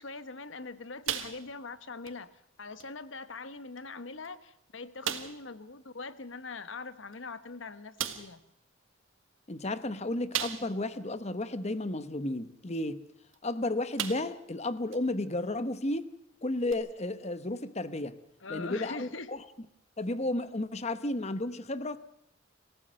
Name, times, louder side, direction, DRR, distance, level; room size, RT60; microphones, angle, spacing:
voice 1, 0.0-2.3 2.6-8.4 18.4-19.3, left 3 dB, 70° left, 1.1 m, -42 dB
sound 1, 1.1-1.7 2.1-2.2 2.8-2.9 3.8-3.9 4.2-4.3 5.0-5.5 7.1-7.2 8.0-8.4 10.3-10.9 11.4-11.5 13.3-13.5 14.0-14.5 14.9-15.0 16.7-16.8, right 9 dB, 85° right, 1.6 m, -35 dB
voice 2, 9.5-13.0 13.4-16.1 16.4-18.2 18.5-19.4 20.0-22.0, left 2 dB, 35° left, 1.0 m, -33 dB
26.5 x 15.5 x 6.5 m
head